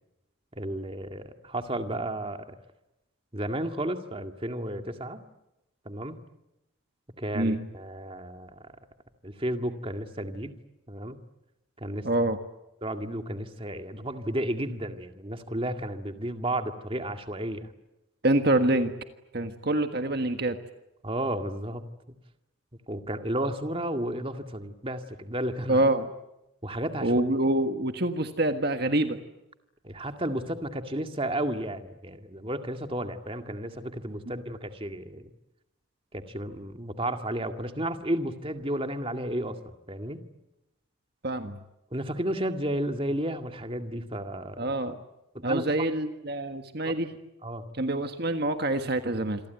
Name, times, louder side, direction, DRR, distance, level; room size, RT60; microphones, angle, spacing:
voice 1, 0.5-2.6 3.3-5.2 5.9-6.2 7.2-8.7 9.2-10.5 10.9-11.2 11.8-12.1 12.8-17.7 21.0-21.8 22.9-25.8 26.6-27.2 29.8-35.3 36.1-40.2 41.9-44.7 45.3-45.9 47.4-47.7, right 1 dB, 25° right, 6 dB, 2.1 m, -32 dB
voice 2, 12.0-12.4 18.2-18.9 19.3-20.6 25.7-26.1 27.0-29.2 41.2-41.6 44.6-45.0 45.4-47.1 47.8-49.4, right 1 dB, 50° right, 7 dB, 1.6 m, -26 dB
28.0 x 23.0 x 9.3 m, 0.91 s
head